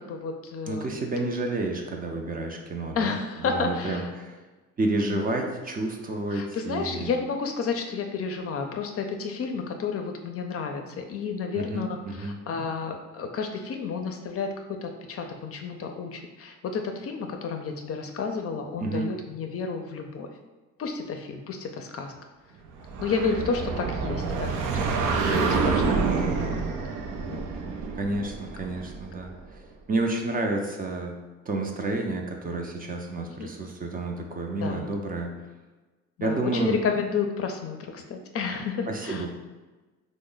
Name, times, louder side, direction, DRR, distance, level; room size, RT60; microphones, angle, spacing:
voice 1, 0.0-1.0 2.9-4.1 5.1-5.6 6.3-14.5 14.8-20.3 20.8-22.1 23.0-24.5 25.2-26.9 27.3-27.4 28.1-28.3 33.4-33.5 34.6-34.9 36.2-39.2, left 5 dB, 50° left, 4 dB, 0.4 m, -31 dB
voice 2, 0.7-3.2 3.4-4.4 4.8-7.1 11.5-12.4 18.8-19.1 27.9-35.5 36.2-36.8 38.9-39.4, right 2 dB, 30° right, 2 dB, 0.4 m, -30 dB
sound 1, 22.8-29.4, right 4 dB, 90° right, 0.5 m, -28 dB
3.0 x 2.0 x 3.8 m, 1.2 s
cardioid pair, 90°, 30 cm